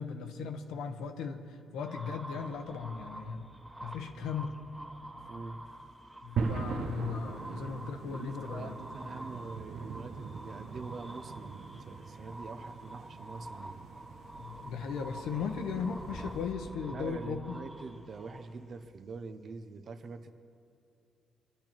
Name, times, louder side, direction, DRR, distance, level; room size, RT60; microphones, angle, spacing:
voice 1, 0.0-3.5 3.8-4.5 6.2-8.8 14.4-17.6, left 6 dB, 90° left, 5 dB, 1.1 m, -37 dB
sound 1, 1.8-18.8, right 1 dB, ahead, 1.2 m, -47 dB
voice 2, 5.3-5.6 8.3-13.8 16.9-20.3, right 4 dB, 50° right, 9 dB, 0.8 m, -44 dB
sound 2, 6.4-16.5, right 5 dB, 75° right, 0.9 m, -41 dB
23.5 x 10.0 x 4.6 m, 2.6 s
cardioid pair, 90°, 0 cm